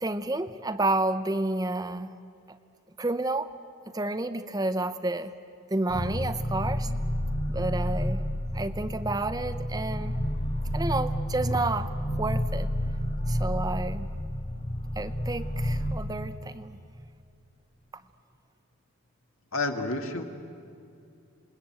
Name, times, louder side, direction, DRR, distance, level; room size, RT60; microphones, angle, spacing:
voice 1, 0.0-2.1 3.0-3.5 3.9-5.3 5.7-6.9 7.5-8.2 8.5-10.2 10.7-12.7 13.3-14.1 15.0-16.8, right 2 dB, 20° right, 10 dB, 0.7 m, -30 dB
sound 1, 5.9-15.9, equal, 30° left, 1.4 m, -30 dB
voice 2, 19.5-20.2, left 2 dB, 90° left, 4 dB, 2.1 m, -29 dB
27.5 x 20.5 x 8.9 m, 2.4 s
head